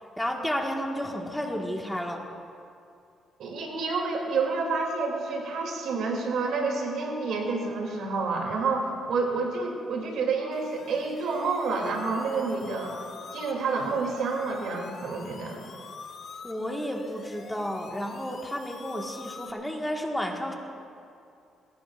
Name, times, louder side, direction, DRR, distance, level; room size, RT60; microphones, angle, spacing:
voice 1, 0.2-2.2 16.4-20.5, equal, 5° left, 0 dB, 1.7 m, -32 dB
voice 2, 3.4-13.0 13.3-15.6, right 4 dB, 75° right, 0 dB, 2.8 m, -29 dB
sound 1, 10.5-19.5, left 5 dB, 55° left, 1.3 m, -45 dB
21.0 x 17.5 x 2.5 m, 2.5 s
cardioid pair, 90°, 0 cm